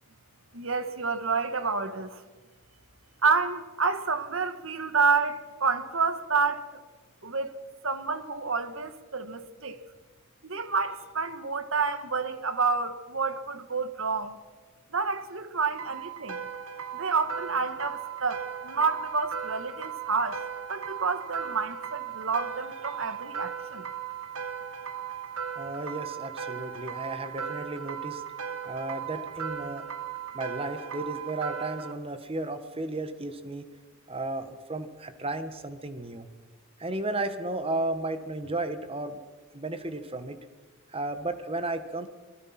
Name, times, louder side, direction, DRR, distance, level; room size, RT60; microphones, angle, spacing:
voice 1, 0.5-2.2 3.2-6.7 7.2-7.5 7.8-9.8 10.4-14.4 14.9-16.4 16.9-20.4 20.7-23.9, right 4 dB, 65° right, 1.8 m, -29 dB
sound 1, 15.8-31.9, right 7 dB, 80° right, 1.6 m, -37 dB
voice 2, 25.5-28.2 28.6-29.8 30.3-33.6 34.1-36.3 36.8-39.2 39.5-40.4 40.9-42.1, right 2 dB, 25° right, 1.6 m, -34 dB
27.0 x 20.0 x 6.0 m
head